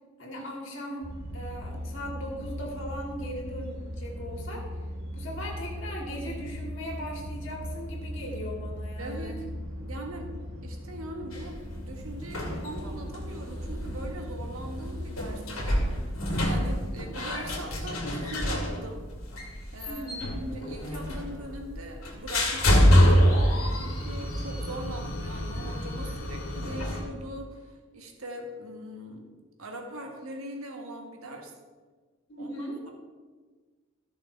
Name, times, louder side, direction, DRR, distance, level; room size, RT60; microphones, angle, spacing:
voice 1, 0.2-1.1 1.3-4.8 5.1-9.3 19.9-20.3 32.3-32.8, equal, 60° left, -1 dB, 2.5 m, -38 dB
sound 1, 1.0-15.0, equal, 45° right, 2.6 m, -38 dB
voice 2, 9.0-9.5 9.7-10.3 10.6-16.1 16.4-19.0 19.7-20.0 20.3-29.3 29.6-31.5 32.4-32.9, right 1 dB, 80° right, 2 dB, 1.7 m, -41 dB
sound 2, 11.3-27.0, equal, 75° left, 2.3 m, -27 dB
14.0 x 6.3 x 4.6 m, 1.4 s
head